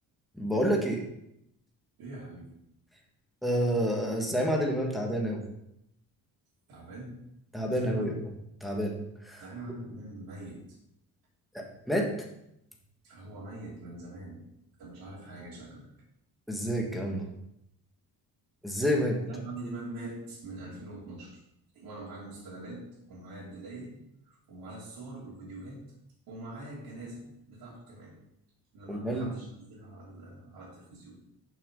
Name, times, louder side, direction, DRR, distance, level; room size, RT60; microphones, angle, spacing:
voice 1, 0.4-1.0 3.4-5.4 7.5-8.2 8.6-9.0 9.2-9.4 11.5-12.1 16.5-17.3 18.6-19.2 28.9-29.3, equal, ahead, 0 dB, 1.4 m, -28 dB
voice 2, 2.0-2.5 6.7-7.1 7.6-8.0 9.4-10.6 13.0-14.4 14.8-15.9 19.2-21.4 21.7-25.8 26.3-28.2 28.7-31.2, right 2 dB, 75° right, -6 dB, 3.1 m, -43 dB
7.0 x 5.8 x 5.2 m, 0.80 s
cardioid pair, 150°, 36 cm